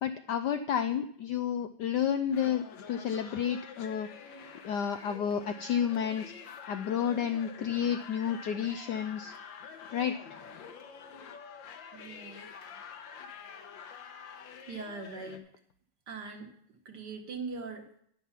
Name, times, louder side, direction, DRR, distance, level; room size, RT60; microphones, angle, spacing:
voice 1, 0.0-4.1 4.6-6.3 6.7-9.3 9.9-10.2, left 8 dB, 85° left, 9 dB, 0.9 m, -31 dB
sound 1, 2.3-15.4, left 6 dB, 65° left, 1.6 m, -47 dB
voice 2, 11.9-12.5 14.7-15.4 16.1-16.5 16.8-17.9, right 4 dB, 55° right, 4 dB, 1.8 m, -41 dB
11.0 x 7.1 x 5.7 m, 0.66 s
omnidirectional pair, 2.4 m